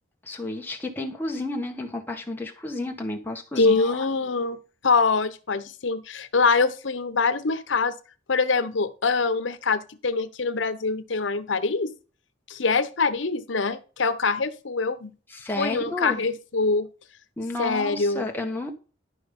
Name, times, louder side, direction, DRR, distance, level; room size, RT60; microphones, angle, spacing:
voice 1, 0.2-4.1 15.3-16.2 17.4-18.7, left 2 dB, 10° left, 1.5 m, -31 dB
voice 2, 3.6-4.6 4.8-8.0 8.3-11.9 12.5-15.1 15.6-16.9 17.6-18.3, left 4 dB, 85° left, 0.9 m, -24 dB
12.0 x 5.1 x 5.4 m
head